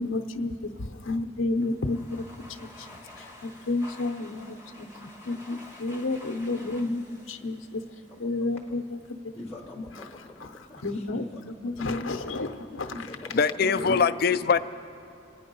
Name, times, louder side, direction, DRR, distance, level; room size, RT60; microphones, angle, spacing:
voice 1, 0.0-7.8 8.2-8.8 9.2-9.3 10.8-11.2 11.6-12.9 13.6-14.0, left 2 dB, 85° left, 5 dB, 0.7 m, -31 dB
Domestic sounds home sounds, 1.6-8.5, left 2 dB, 15° right, 1.4 m, -49 dB
voice 2, 8.5-8.8 9.3-11.7 12.0-12.5 12.9-13.6, left 2 dB, 10° left, 1 dB, 0.9 m, -44 dB
voice 3, 13.3-14.6, left 5 dB, 50° left, 11 dB, 0.4 m, -22 dB
27.0 x 9.4 x 5.3 m, 2.9 s
head